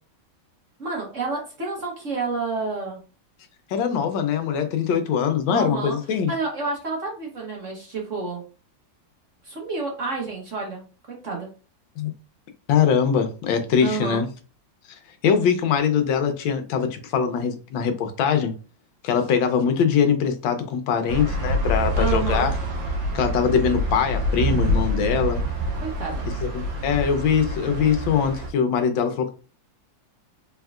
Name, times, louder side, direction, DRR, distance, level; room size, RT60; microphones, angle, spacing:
voice 1, 0.8-3.0 5.5-6.0 6.3-8.4 9.4-10.8 11.2-11.5 13.8-14.2 21.9-22.5 25.8-26.3, right 4 dB, 45° right, 1.1 m, -29 dB
voice 2, 3.7-6.3 12.0-12.1 12.7-14.3 15.2-18.5 19.0-22.5 23.1-25.4 26.4-29.3, left 7 dB, 80° left, 1.4 m, -22 dB
sound 1, 21.1-28.5, equal, 80° right, 1.5 m, -26 dB
4.3 x 3.5 x 2.4 m
omnidirectional pair, 2.1 m